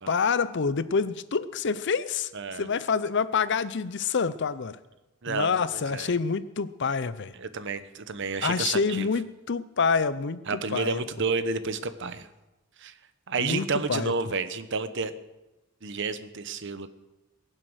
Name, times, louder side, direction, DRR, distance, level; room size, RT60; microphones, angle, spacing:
voice 1, 0.1-2.3 2.6-4.8 5.3-7.3 8.4-11.0 13.4-14.1, left 5 dB, 60° left, 15 dB, 0.6 m, -27 dB
voice 2, 2.3-2.7 5.2-6.1 7.3-9.1 10.5-12.3 12.8-12.9 13.3-15.1 15.8-16.9, right 4 dB, 60° right, 12 dB, 0.9 m, -31 dB
22.0 x 7.6 x 6.3 m, 1.0 s
head